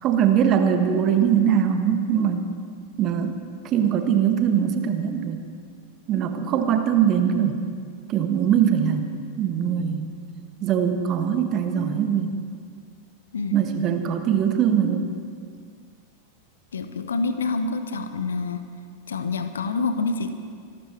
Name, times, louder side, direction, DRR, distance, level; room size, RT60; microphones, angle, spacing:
voice 1, 0.0-2.4 3.0-5.4 6.1-7.6 8.1-9.1 9.4-10.1 10.6-12.3 13.5-15.1, right 8 dB, 35° right, 6 dB, 1.5 m, -22 dB
voice 2, 16.7-18.6 19.1-20.3, left 4 dB, 70° left, 10 dB, 1.0 m, -27 dB
25.5 x 12.5 x 4.6 m, 2.1 s
figure-of-eight pair, 90°, 0 cm